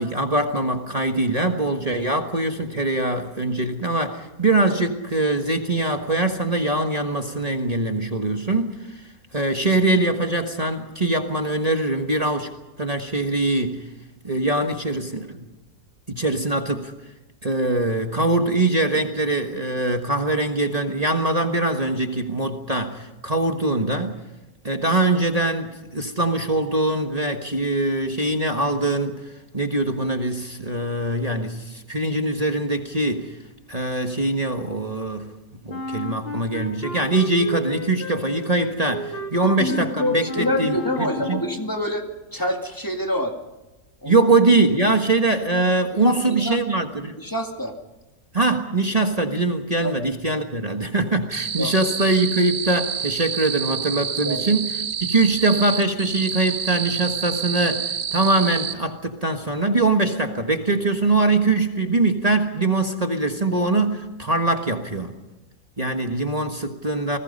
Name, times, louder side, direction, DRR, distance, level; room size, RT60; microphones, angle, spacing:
voice 1, 0.0-9.0 9.3-12.5 12.8-13.8 14.2-15.5 16.1-16.9 17.4-24.2 24.6-29.2 29.5-33.4 33.7-35.3 35.6-41.4 44.0-47.2 48.3-65.1 65.8-67.2, right 2 dB, 25° right, 4 dB, 1.4 m, -22 dB
Wind instrument woodwind instrument, 35.7-41.7, left 1 dB, 35° left, 2.9 m, -33 dB
voice 2, 39.4-42.0 42.3-43.3 44.0-44.2 46.0-46.6 47.2-47.7 49.8-49.9 51.6-51.7 54.3-54.6, left 1 dB, 10° left, 3 dB, 2.2 m, -26 dB
sound 1, 51.3-58.7, right 7 dB, 85° right, 1.8 m, -28 dB
28.5 x 20.0 x 5.4 m, 1.0 s
omnidirectional pair, 1.7 m